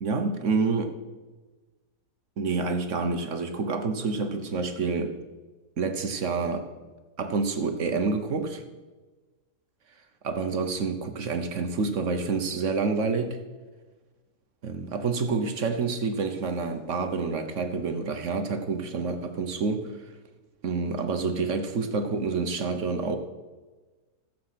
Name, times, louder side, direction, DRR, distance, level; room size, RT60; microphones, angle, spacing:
voice 1, 0.0-0.9 2.4-5.2 5.8-6.7 7.2-8.6 10.2-13.4 14.6-19.9 20.6-23.2, right 4 dB, 55° right, 7 dB, 1.2 m, -28 dB
14.5 x 7.6 x 5.8 m, 1.3 s
omnidirectional pair, 1.7 m